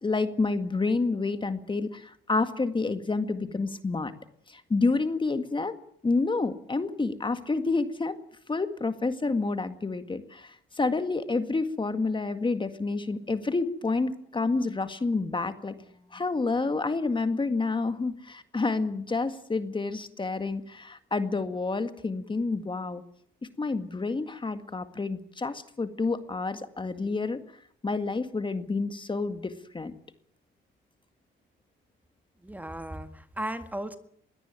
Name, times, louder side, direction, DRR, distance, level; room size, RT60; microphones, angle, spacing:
voice 1, 0.0-4.1 4.5-5.8 6.0-8.2 8.5-15.7 16.1-23.0 23.6-27.4 27.8-29.9, left 3 dB, 25° left, 9 dB, 1.9 m, -29 dB
voice 2, 32.4-34.0, right 1 dB, 10° right, 9 dB, 1.9 m, -36 dB
22.0 x 17.5 x 9.1 m, 0.66 s
cardioid pair, 90°, 20 cm